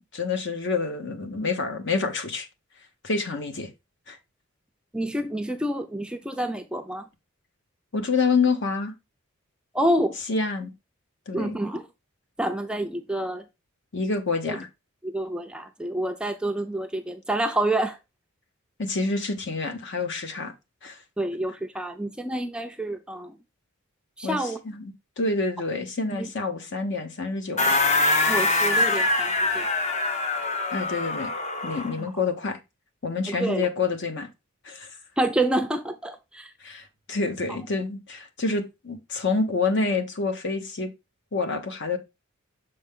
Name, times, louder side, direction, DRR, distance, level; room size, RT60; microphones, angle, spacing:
voice 1, 0.1-2.5 3.0-3.7 4.1-4.2 7.9-8.9 10.3-10.7 11.3-11.6 13.9-14.7 18.8-20.5 20.8-21.0 24.2-27.8 30.7-31.3 31.6-32.6 33.0-34.3 34.6-35.0 36.6-40.9 41.3-42.0, left 4 dB, 55° left, 0.9 m, -27 dB
voice 2, 4.9-7.0 9.7-10.2 11.3-11.9 12.4-13.4 14.5-14.6 15.0-18.0 21.2-23.4 24.2-24.6 26.1-26.3 28.3-29.7 32.0-32.1 33.3-33.7 35.2-36.5, right 1 dB, 5° right, 0.4 m, -28 dB
sound 1, 27.6-32.0, left 2 dB, 30° left, 0.7 m, -24 dB
6.6 x 4.3 x 3.6 m
head